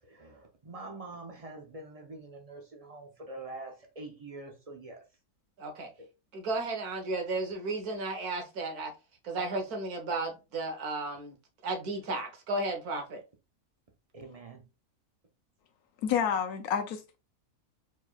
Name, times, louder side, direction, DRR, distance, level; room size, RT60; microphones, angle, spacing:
voice 1, 0.0-5.0 6.0-6.1 14.1-14.6, right 2 dB, 35° right, 0.6 m, -45 dB
voice 2, 5.6-5.9 6.3-8.9 9.2-11.4 11.6-13.2, right 2 dB, 80° right, 1.6 m, -34 dB
voice 3, 16.0-17.2, left 8 dB, 75° left, 1.1 m, -29 dB
4.8 x 4.1 x 2.3 m
omnidirectional pair, 1.6 m